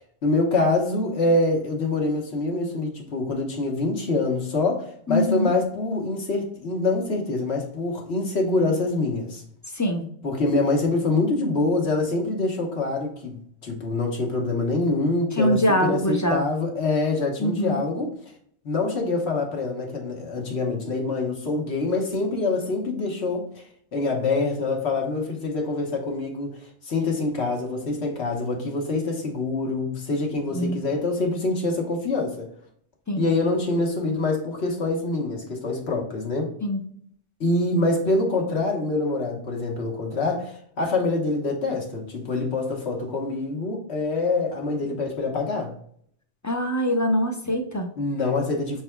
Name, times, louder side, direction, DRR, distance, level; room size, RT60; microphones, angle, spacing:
voice 1, 0.0-9.4 10.2-18.1 18.6-23.6 23.9-32.5 33.2-36.6 37.4-45.7 48.0-48.8, left 3 dB, 70° left, 1.4 m, -25 dB
voice 2, 5.1-5.5 9.7-10.0 15.4-16.5 17.4-17.8 30.5-30.8 33.1-33.3 36.6-36.8 46.4-47.9, equal, 20° left, 0.5 m, -23 dB
5.9 x 4.0 x 2.2 m
omnidirectional pair, 1.2 m